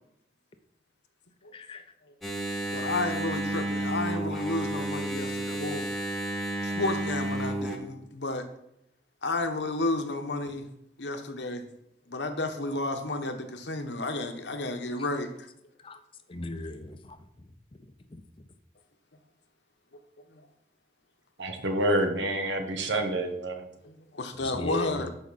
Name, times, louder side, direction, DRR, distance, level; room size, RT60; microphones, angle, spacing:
voice 1, 1.5-1.8 15.8-16.0 16.3-17.2 18.1-18.2 24.4-25.0, left 2 dB, 30° left, 9 dB, 0.6 m, -36 dB
Engine, 2.2-7.8, right 1 dB, ahead, 1.3 m, -31 dB
voice 2, 2.7-5.9 6.6-8.5 9.2-10.6 11.0-11.6 12.1-15.5 20.3-20.5 23.8-25.1, left 2 dB, 80° left, 6 dB, 1.1 m, -32 dB
voice 3, 21.4-23.7, right 1 dB, 85° right, 5 dB, 1.3 m, -28 dB
12.0 x 5.2 x 4.1 m, 0.78 s
head